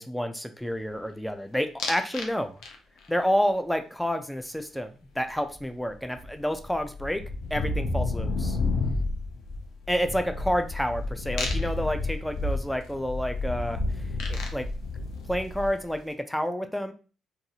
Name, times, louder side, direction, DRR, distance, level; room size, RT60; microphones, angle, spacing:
voice 1, 0.0-2.6 3.1-7.2 7.5-8.6 9.9-14.7 15.3-16.9, equal, 5° left, 8 dB, 0.3 m, -29 dB
sound 1, 1.8-2.3 2.6-3.1 5.5-5.6 5.9-15.9, left 3 dB, 85° left, 0.6 m, -31 dB
2.5 x 2.3 x 2.9 m, 0.36 s
cardioid pair, 90°, 0 cm